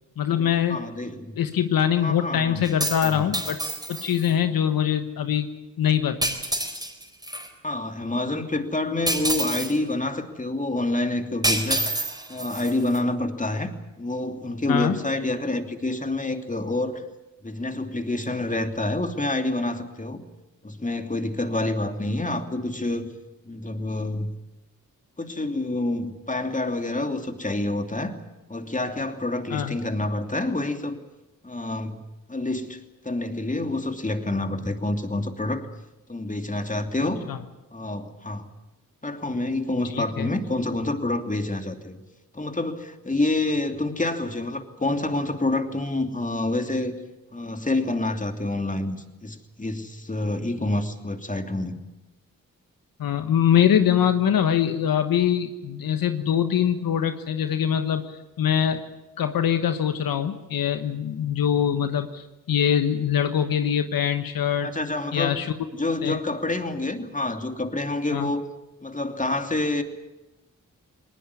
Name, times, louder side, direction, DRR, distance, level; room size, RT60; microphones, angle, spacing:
voice 1, 0.2-0.8 1.4-3.6 3.9-5.5 5.8-6.4 14.7-15.0 29.5-29.8 37.3-37.4 39.9-40.3 53.0-58.8 59.2-64.7 65.1-65.5 66.0-66.2 68.1-68.3, left 9 dB, 85° left, 9 dB, 1.3 m, -23 dB
voice 2, 0.7-1.4 2.0-2.8 3.0-3.4 7.6-11.9 12.3-17.0 17.4-20.2 20.6-23.1 23.4-24.3 25.2-28.1 28.5-31.0 31.4-32.0 32.3-32.8 33.0-35.7 36.1-37.2 37.7-38.5 39.0-42.0 42.3-47.0 47.3-51.8 64.6-65.3 65.7-68.4 68.8-69.8, left 2 dB, 20° left, 6 dB, 2.8 m, -27 dB
sound 1, 2.6-4.3 6.2-7.5 9.1-9.8 11.4-13.0, right 1 dB, 10° right, 4.5 m, -28 dB
20.0 x 19.5 x 9.8 m, 1.0 s
cardioid pair, 60°, 34 cm